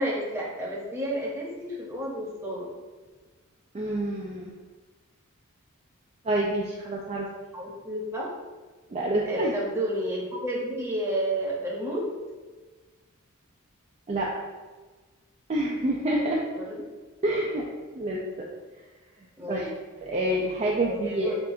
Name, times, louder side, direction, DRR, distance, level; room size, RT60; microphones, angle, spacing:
voice 1, 0.0-2.7 7.5-8.3 9.3-12.1 16.5-16.8 19.4-19.7 20.8-21.4, equal, 10° right, -5 dB, 0.8 m, -31 dB
voice 2, 3.7-4.5 6.2-7.3 8.9-9.5 14.1-14.3 15.5-16.4 17.2-17.6 17.9-18.2 19.5-19.7 20.0-21.3, right 1 dB, 30° right, -3 dB, 0.3 m, -27 dB
5.6 x 2.5 x 2.6 m, 1.3 s
head